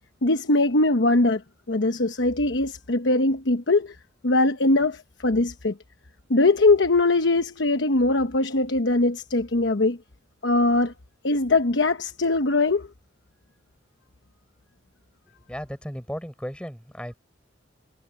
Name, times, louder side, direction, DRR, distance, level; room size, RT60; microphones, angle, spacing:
voice 1, 0.2-1.4 1.7-3.9 4.2-5.7 6.3-10.0 10.4-10.9 11.2-12.9, left 2 dB, 70° left, 1.0 m, -21 dB
voice 2, 15.5-17.2, equal, 5° left, 5.9 m, -35 dB
head